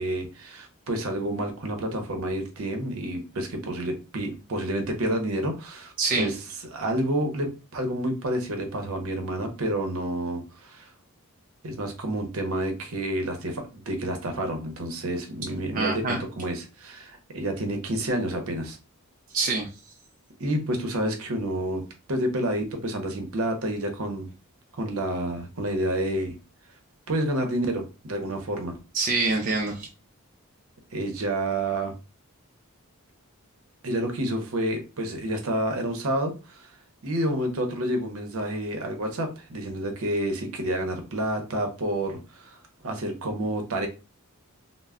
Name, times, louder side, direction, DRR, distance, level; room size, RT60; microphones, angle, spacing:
voice 1, 0.0-6.3 6.7-10.9 11.6-18.8 20.4-21.8 22.1-24.3 24.8-26.4 27.1-28.8 30.9-31.9 33.8-36.7 37.0-42.6 42.8-43.9, right 1 dB, 70° right, 5 dB, 0.7 m, -29 dB
voice 2, 6.0-6.3 15.7-16.2 19.3-19.7 28.9-29.9, right 3 dB, 35° right, 0 dB, 0.4 m, -25 dB
2.1 x 2.0 x 3.5 m, 0.30 s
head